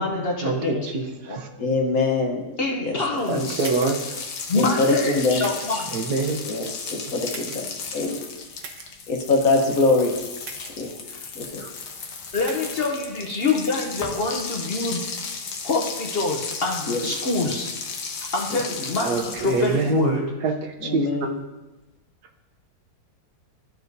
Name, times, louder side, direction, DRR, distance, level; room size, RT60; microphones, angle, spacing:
voice 1, 0.0-0.9 1.3-1.4 2.6-3.7 4.5-6.0 11.1-11.2 12.3-15.1 15.6-17.7 18.3-20.3, left 3 dB, 50° left, 1 dB, 0.8 m, -26 dB
voice 2, 0.9-1.5 3.3-4.0 5.9-6.4 11.6-11.7 19.0-21.3, right 4 dB, 85° right, 4 dB, 1.4 m, -25 dB
voice 3, 1.6-3.0 4.6-5.5 6.4-7.6 7.9-8.2 9.1-10.1 10.8-10.9 11.3-11.6 16.9-17.0 18.5-18.6 20.8-21.4, left 3 dB, 65° left, 2 dB, 1.5 m, -23 dB
sound 1, 3.2-20.0, left 5 dB, 85° left, 1.4 m, -35 dB
sound 2, 3.6-4.1 5.4-5.9 7.3-7.8 8.6-8.9 10.4-10.9 12.3-12.7, right 5 dB, 65° right, 1.1 m, -40 dB
13.5 x 4.6 x 2.6 m, 1.1 s
omnidirectional pair, 1.7 m